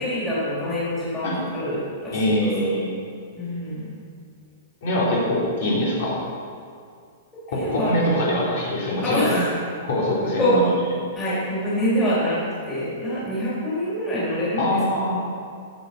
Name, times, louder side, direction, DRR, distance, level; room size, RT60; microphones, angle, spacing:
voice 1, 0.0-2.5 3.4-3.9 7.5-7.9 9.0-9.5 10.4-10.5 11.1-12.4 12.7-14.8, left 1 dB, 10° left, -10 dB, 4.2 m, -25 dB
voice 2, 2.1-3.0 4.8-6.2 7.5-9.4 9.8-10.7 14.6-15.1, left 1 dB, 50° left, -6 dB, 3.8 m, -23 dB
16.0 x 8.5 x 6.2 m, 2.3 s
hypercardioid pair, 175°, 0 cm